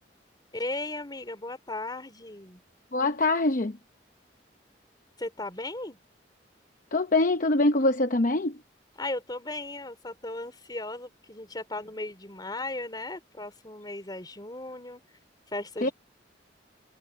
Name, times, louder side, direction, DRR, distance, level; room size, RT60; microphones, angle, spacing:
voice 1, 0.5-2.6 5.2-6.0 9.0-15.0 15.5-15.9, left 2 dB, 25° left, 3.9 m, -36 dB
voice 2, 2.9-3.8 6.9-8.6 15.8-15.9, left 2 dB, 50° left, 0.8 m, -24 dB
head